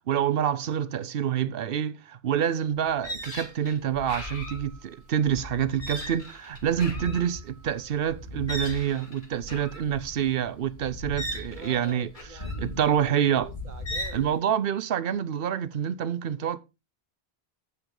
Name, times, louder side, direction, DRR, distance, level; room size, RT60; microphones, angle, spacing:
voice 1, 0.1-12.1 12.6-13.5 14.1-16.6, right 9 dB, 65° right, 0.9 m, -27 dB
sound 1, 2.4-2.5 2.8-14.3, left 1 dB, 50° left, 2.2 m, -37 dB
voice 2, 11.5-14.3, right 4 dB, 50° right, 1.2 m, -46 dB
9.0 x 7.4 x 3.8 m
omnidirectional pair, 1.0 m